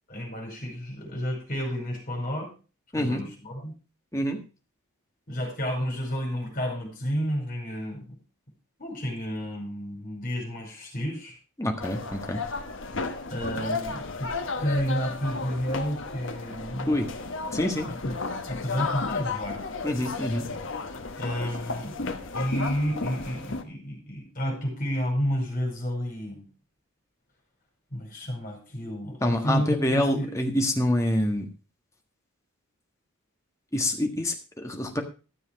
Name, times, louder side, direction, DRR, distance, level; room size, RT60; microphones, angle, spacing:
voice 1, 0.1-2.5 3.0-3.7 5.3-8.1 8.8-11.4 13.3-14.3 14.6-16.9 17.9-18.2 18.5-19.6 21.2-22.0 22.3-26.5 27.9-30.3, equal, 40° left, 0 dB, 5.1 m, -31 dB
voice 2, 2.9-3.2 4.1-4.4 11.6-12.4 16.9-17.1 17.5-17.9 19.8-20.5 29.2-31.5 33.7-35.0, left 1 dB, 15° left, 3 dB, 1.5 m, -26 dB
sound 1, 11.8-23.6, left 3 dB, 55° left, 1.2 m, -33 dB
13.0 x 7.1 x 5.2 m, 0.34 s
head